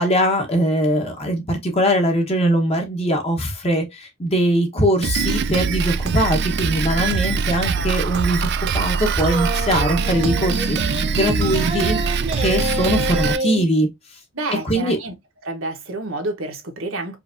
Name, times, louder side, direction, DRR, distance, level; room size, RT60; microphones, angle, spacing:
voice 1, 0.0-8.5 8.7-13.9 14.6-15.0, equal, 30° left, 1.1 m, -21 dB
Drum kit, 5.0-13.4, right 5 dB, 55° right, 0.4 m, -23 dB
voice 2, 7.5-7.9 14.3-15.1 15.4-17.2, right 2 dB, 75° right, 1.2 m, -29 dB
sound 1, 9.2-13.6, right 1 dB, 30° right, 1.0 m, -27 dB
4.9 x 2.6 x 2.6 m
head